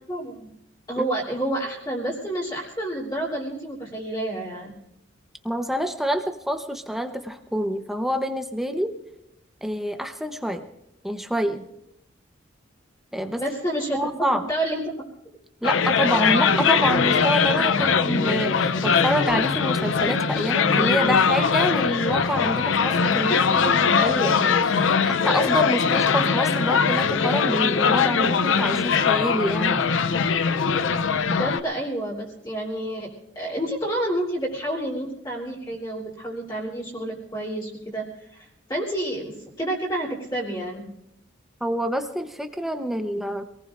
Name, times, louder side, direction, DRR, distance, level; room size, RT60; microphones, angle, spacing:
voice 1, 0.1-0.5 0.9-4.7 13.4-14.0 14.5-14.8 31.3-33.1 33.3-40.8, right 1 dB, 20° left, -5 dB, 3.3 m, -29 dB
voice 2, 5.4-8.9 9.6-10.6 11.0-11.6 13.1-13.4 13.9-14.4 15.6-29.8 41.6-43.4, equal, ahead, 6 dB, 0.9 m, -27 dB
sound 1, 15.6-31.6, left 5 dB, 75° left, 0.6 m, -21 dB
27.0 x 18.5 x 2.6 m, 0.81 s
head